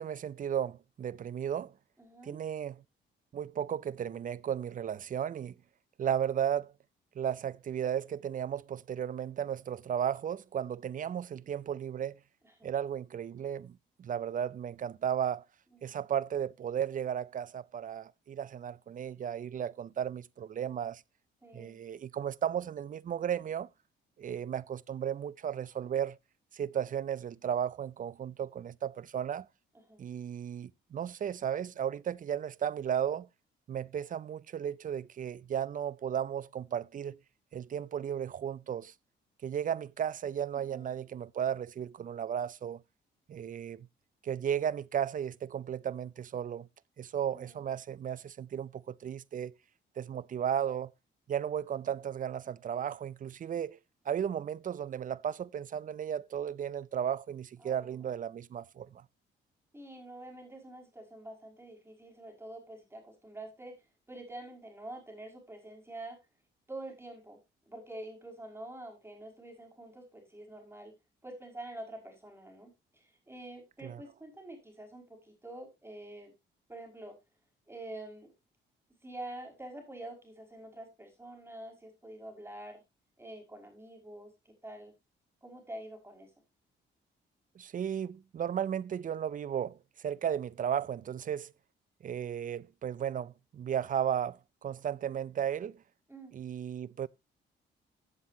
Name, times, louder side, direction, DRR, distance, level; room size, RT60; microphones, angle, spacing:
voice 1, 0.0-1.7 2.2-2.8 3.3-5.5 6.0-6.7 7.2-12.2 12.6-15.4 15.8-21.0 21.5-23.7 24.2-26.2 26.5-29.5 30.0-33.3 33.7-37.2 37.5-38.9 39.4-42.8 43.3-43.9 44.2-46.7 47.0-49.5 50.0-50.9 51.3-53.8 54.1-59.0 73.8-74.0 87.6-89.8 90.0-91.5 92.0-95.8 96.3-97.1, right 9 dB, 40° right, 0.5 m, -34 dB
voice 2, 2.0-2.4 12.4-12.7 15.7-15.9 21.4-21.8 29.9-30.0 40.5-41.0 47.3-47.7 57.6-58.0 59.7-63.7 64.1-66.2 66.7-67.4 67.7-70.9 71.2-76.3 76.7-77.1 77.7-78.3 79.0-82.8 83.2-84.9 85.4-86.3 96.1-96.3, right 1 dB, 10° right, 5.6 m, -47 dB
15.5 x 7.8 x 2.8 m
cardioid pair, 90°, 20 cm